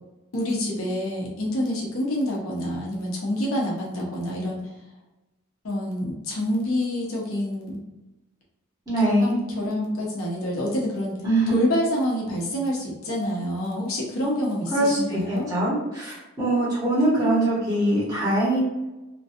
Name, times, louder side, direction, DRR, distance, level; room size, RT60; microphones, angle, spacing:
voice 1, 0.3-4.6 5.6-7.8 9.0-11.1 11.5-15.5, left 1 dB, 80° left, -3 dB, 0.9 m, -27 dB
voice 2, 8.9-9.4 11.2-11.6 14.7-18.6, right 1 dB, 20° right, -8 dB, 1.2 m, -23 dB
3.0 x 2.5 x 2.6 m, 1.0 s
head